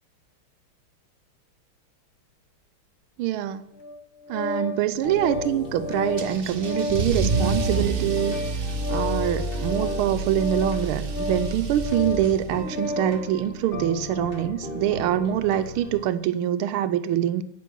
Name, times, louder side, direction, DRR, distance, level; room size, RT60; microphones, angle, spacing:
voice 1, 3.2-3.7 4.3-8.4 8.9-17.4, right 11 dB, 85° right, 12 dB, 1.5 m, -25 dB
Organ, 3.8-13.2, left 2 dB, 80° left, 2.1 m, -32 dB
sound 1, 5.0-16.0, left 2 dB, 30° left, 1.6 m, -36 dB
Car / Engine starting / Accelerating revving vroom, 6.2-12.7, right 4 dB, 55° right, 0.6 m, -29 dB
11.5 x 5.9 x 7.4 m, 0.77 s
omnidirectional pair, 2.3 m